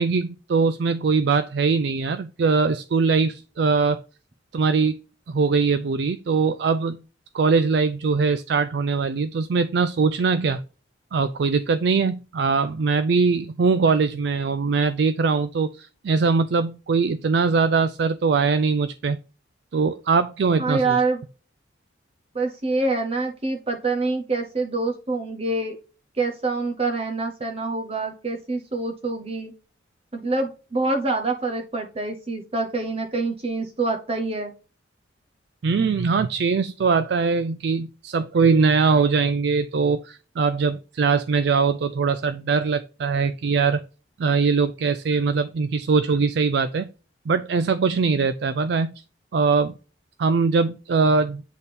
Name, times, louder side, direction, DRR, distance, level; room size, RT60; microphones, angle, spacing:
voice 1, 0.0-4.0 4.5-4.9 5.3-7.0 7.3-10.6 11.1-19.2 19.7-21.0 35.6-43.8 44.2-46.9 47.3-48.9 49.3-49.7 50.2-51.4, right 4 dB, 60° right, 12 dB, 0.4 m, -21 dB
voice 2, 20.6-21.2 22.3-25.8 26.2-29.5 30.1-34.5, right 3 dB, 30° right, 4 dB, 0.7 m, -26 dB
8.2 x 3.5 x 4.1 m, 0.35 s
head